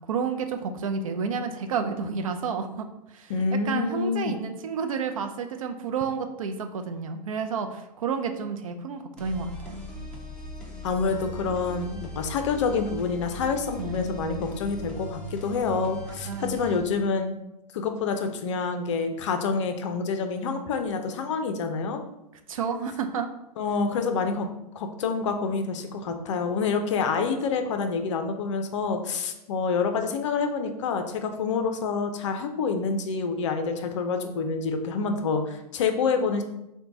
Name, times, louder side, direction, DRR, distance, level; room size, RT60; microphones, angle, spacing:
voice 1, 0.1-2.9 3.1-9.9 13.8-14.0 16.3-16.6 22.5-23.3, right 5 dB, 55° right, 7 dB, 0.5 m, -30 dB
voice 2, 3.3-4.4 10.8-17.4 17.7-22.0 23.6-24.5 24.8-36.4, left 5 dB, 45° left, 6 dB, 0.5 m, -27 dB
sound 1, 9.2-16.8, equal, 5° left, 0.6 m, -39 dB
4.4 x 2.2 x 3.8 m, 0.87 s
figure-of-eight pair, 105°, 21 cm